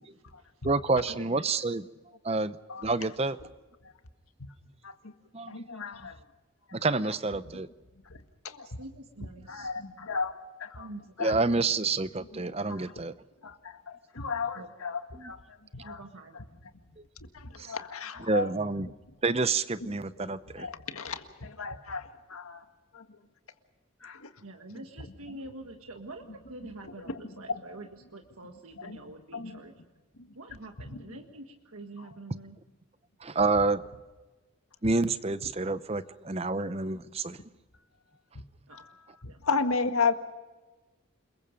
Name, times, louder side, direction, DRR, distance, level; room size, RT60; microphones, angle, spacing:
voice 1, 0.6-1.9 2.2-2.6 2.8-3.4 5.3-5.6 6.7-7.7 11.2-13.1 15.2-15.3 17.0-17.1 17.6-17.7 18.3-18.9 19.2-20.7 33.2-33.8 34.8-37.4, right 3 dB, 30° right, 14 dB, 0.7 m, -28 dB
voice 2, 5.5-6.2 7.5-7.6 8.1-8.2 8.4-8.7 9.5-10.9 11.2-11.4 12.3-12.4 12.7-12.8 13.4-16.0 16.3-16.5 17.2-18.5 20.6-22.6 22.9-23.1 24.0-24.3 25.3-25.4 27.1-27.6 28.8-29.0 29.3-29.6 30.2-30.3 30.9-31.2 32.0-32.1 38.7-40.2, left 4 dB, 85° left, 8 dB, 1.8 m, -34 dB
voice 3, 8.6-9.7 10.8-11.3 14.6-14.7 15.8-16.4 24.4-29.7 30.4-32.6 38.7-38.8 39.3-39.4, right 2 dB, 90° right, 4 dB, 1.7 m, -46 dB
29.0 x 21.5 x 5.2 m, 1.2 s
head